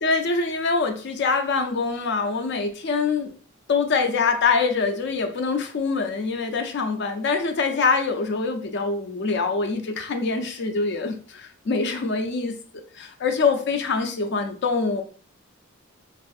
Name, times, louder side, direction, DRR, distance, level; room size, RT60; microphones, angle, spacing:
voice 1, 0.0-3.3 3.7-12.5 12.9-15.0, left 4 dB, 55° left, 5 dB, 0.4 m, -24 dB
3.4 x 2.4 x 2.4 m, 0.43 s
head